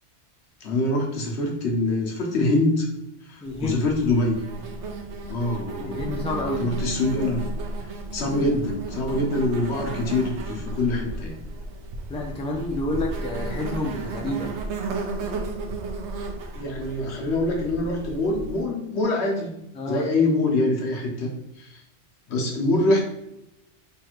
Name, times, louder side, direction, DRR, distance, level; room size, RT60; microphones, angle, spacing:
voice 1, 0.6-2.9 3.3-4.4 5.3-6.3 6.6-7.4 8.1-11.4 16.5-19.5 19.9-21.3 21.6-21.8 22.3-23.0, left 2 dB, 75° left, 0 dB, 1.1 m, -24 dB
voice 2, 3.4-3.8 5.8-6.7 12.1-14.5 19.7-20.0, left 2 dB, 10° left, -1 dB, 0.3 m, -29 dB
Insect, 3.4-18.6, right 2 dB, 75° right, 0.9 m, -33 dB
3.4 x 2.4 x 4.4 m, 0.86 s
omnidirectional pair, 1.2 m